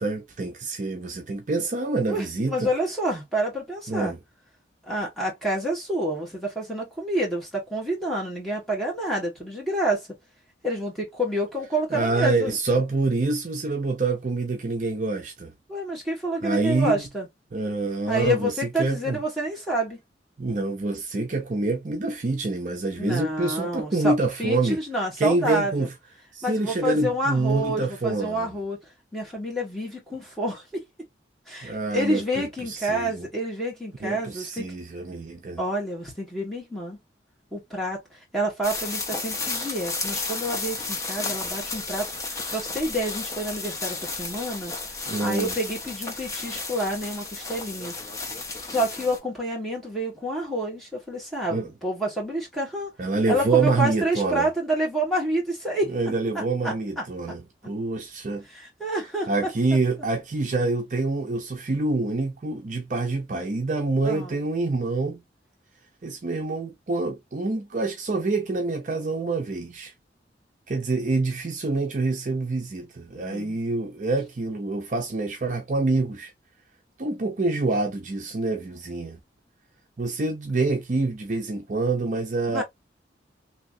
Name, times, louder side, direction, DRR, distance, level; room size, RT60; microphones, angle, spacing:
voice 1, 0.0-2.7 3.9-4.2 11.9-15.5 16.4-17.0 17.5-18.5 18.8-19.2 20.4-24.8 25.2-25.9 26.3-28.5 31.6-33.3 34.0-35.6 45.1-45.6 51.5-51.7 53.0-54.5 55.9-58.4 59.3-65.2 66.0-69.9 70.7-76.3 77.0-79.2 80.0-82.6, right 3 dB, 45° right, 0.5 m, -26 dB
voice 2, 2.1-4.1 4.9-10.1 10.6-12.6 15.7-17.3 18.1-20.0 23.0-24.1 24.4-25.9 26.4-28.8 29.1-30.8 31.5-34.7 35.6-37.0 37.5-47.9 48.7-52.9 53.3-56.0 56.3-57.0 58.5-59.3 64.0-64.4 73.2-73.6 82.5-82.6, right 1 dB, ahead, 1.4 m, -28 dB
sound 1, 38.6-49.2, left 3 dB, 15° left, 0.6 m, -33 dB
3.1 x 2.7 x 2.5 m
head